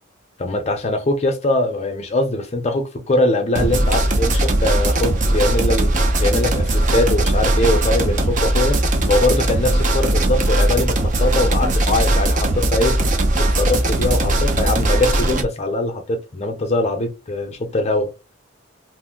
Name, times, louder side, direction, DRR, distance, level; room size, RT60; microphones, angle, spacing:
voice 1, 0.4-5.9 6.2-13.0 13.4-18.1, left 2 dB, 30° left, 0.6 m, -22 dB
sound 1, 3.6-15.4, right 1 dB, 35° right, 0.5 m, -18 dB
2.6 x 2.1 x 3.6 m
head